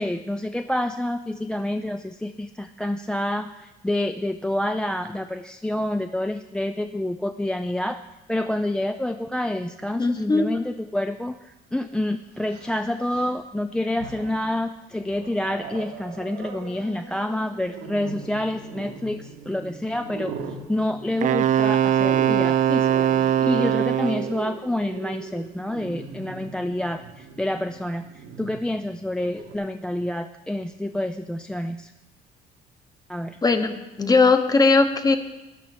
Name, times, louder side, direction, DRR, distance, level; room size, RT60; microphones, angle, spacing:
voice 1, 0.0-8.0 8.3-20.3 20.7-31.9 33.1-33.4, left 1 dB, 5° left, 7 dB, 0.4 m, -28 dB
voice 2, 10.0-10.5 33.4-35.2, left 3 dB, 20° left, 8 dB, 1.1 m, -19 dB
Growling, 11.3-11.4 12.4-13.4 13.8-14.5 15.0-29.6, right 5 dB, 80° right, 1.5 m, -40 dB
Wind instrument woodwind instrument, 21.2-24.4, right 9 dB, 50° right, 0.5 m, -21 dB
12.5 x 10.5 x 4.3 m, 1.0 s
cardioid pair, 110°, 17 cm